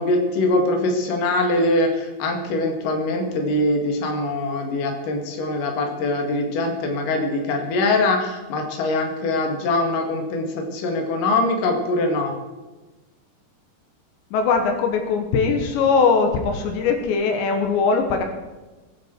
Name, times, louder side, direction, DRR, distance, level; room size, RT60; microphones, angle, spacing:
voice 1, 0.0-12.3, left 2 dB, 55° left, 3 dB, 3.3 m, -23 dB
voice 2, 14.3-18.2, left 5 dB, 80° left, 5 dB, 3.5 m, -20 dB
21.5 x 9.8 x 4.6 m, 1.2 s
omnidirectional pair, 5.0 m